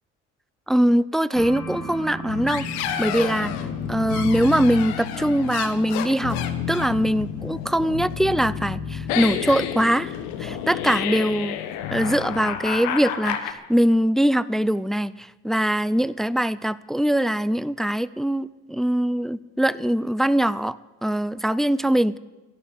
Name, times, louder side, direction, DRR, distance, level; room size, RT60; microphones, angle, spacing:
voice 1, 0.7-2.6 3.0-3.5 3.9-6.4 6.7-11.6 11.9-22.2, equal, ahead, 17 dB, 0.5 m, -22 dB
sound 1, 1.3-10.8, equal, 60° left, 6.4 m, -39 dB
sound 2, 2.3-13.5, left 9 dB, 80° left, 1.3 m, -30 dB
13.5 x 11.5 x 8.2 m, 1.1 s
hypercardioid pair, 60°, 37 cm